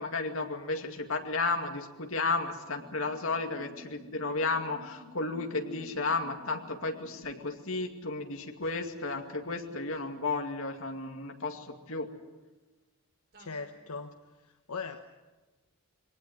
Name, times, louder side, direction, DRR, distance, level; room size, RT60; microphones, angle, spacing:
voice 1, 0.0-12.1, left 3 dB, 60° left, 4 dB, 2.3 m, -33 dB
sound 1, 2.8-7.6 8.6-8.7 9.0-9.2 9.5-9.6 9.9-10.0 13.3-13.9, left 1 dB, 45° right, 3.0 m, -54 dB
voice 2, 13.4-15.0, left 4 dB, 80° left, 6 dB, 1.1 m, -40 dB
22.5 x 18.5 x 9.6 m, 1.2 s
head